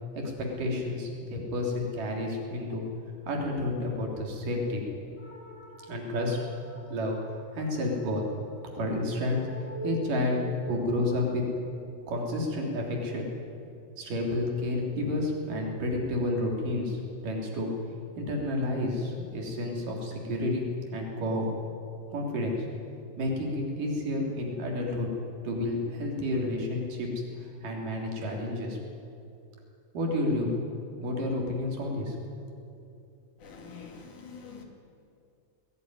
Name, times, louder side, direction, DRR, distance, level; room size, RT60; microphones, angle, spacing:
voice 1, 0.6-2.8 3.3-4.8 5.9-6.4 6.9-7.2 7.5-8.2 8.8-9.4 9.8-11.4 12.1-13.3 14.0-17.7 18.2-21.5 22.1-22.6 23.2-25.1 25.4-27.1 27.4-28.8 29.9-30.6 31.0-32.2, left 1 dB, 70° right, 0 dB, 5.0 m, -30 dB
sound 1, 5.2-14.0, left 1 dB, 10° left, 3.9 m, -46 dB
voice 2, 33.4-34.6, left 5 dB, 65° left, 2 dB, 3.9 m, -45 dB
21.0 x 17.5 x 9.9 m, 2.5 s
omnidirectional pair, 3.9 m